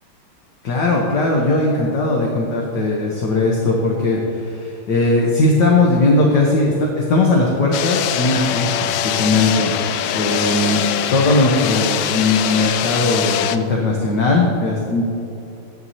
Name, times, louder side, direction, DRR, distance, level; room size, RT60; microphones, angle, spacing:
voice 1, 0.6-10.8 11.1-15.0, left 2 dB, 60° left, -2 dB, 1.6 m, -18 dB
sound 1, 7.7-13.6, left 10 dB, 80° left, 1.4 m, -22 dB
14.0 x 10.5 x 2.8 m, 2.8 s
omnidirectional pair, 2.3 m